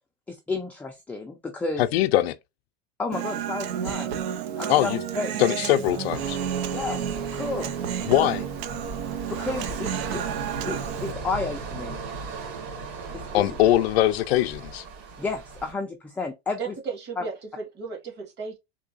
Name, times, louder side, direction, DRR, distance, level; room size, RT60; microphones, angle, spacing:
voice 1, 0.3-1.9 3.0-4.1 4.6-4.9 5.2-5.3 6.7-8.3 9.3-10.2 10.7-12.0 13.1-13.4 15.2-16.7 17.2-17.3, left 3 dB, 5° left, 0.4 m, -32 dB
voice 2, 1.8-2.4 4.7-5.0 5.4-6.4 8.1-8.4 13.3-14.8, left 14 dB, 75° left, 0.5 m, -22 dB
Human voice, 3.1-11.1, right 9 dB, 75° right, 0.7 m, -31 dB
sound 1, 6.1-15.7, right 4 dB, 60° right, 2.1 m, -37 dB
voice 3, 16.6-18.6, right 5 dB, 35° right, 1.7 m, -35 dB
3.8 x 2.7 x 2.5 m
supercardioid pair, 135°, 31 cm